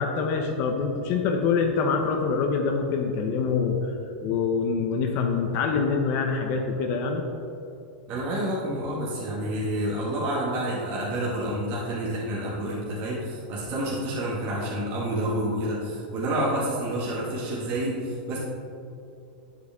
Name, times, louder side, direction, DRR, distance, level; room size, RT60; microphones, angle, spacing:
voice 1, 0.0-3.9 4.2-7.2, left 5 dB, 45° left, 3 dB, 0.9 m, -25 dB
voice 2, 8.1-18.4, right 1 dB, 40° right, -6 dB, 2.0 m, -29 dB
10.5 x 8.1 x 3.6 m, 2.7 s
supercardioid pair, 145°, 5 cm